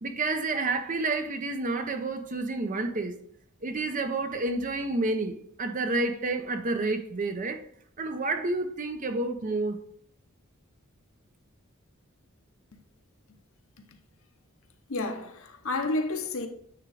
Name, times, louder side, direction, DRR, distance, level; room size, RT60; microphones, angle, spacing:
voice 1, 0.0-3.1 3.6-7.6 8.0-9.8, right 2 dB, 35° right, 0.6 m, -29 dB
voice 2, 14.9-16.5, left 2 dB, 70° left, 0.8 m, -30 dB
9.1 x 3.6 x 3.4 m
head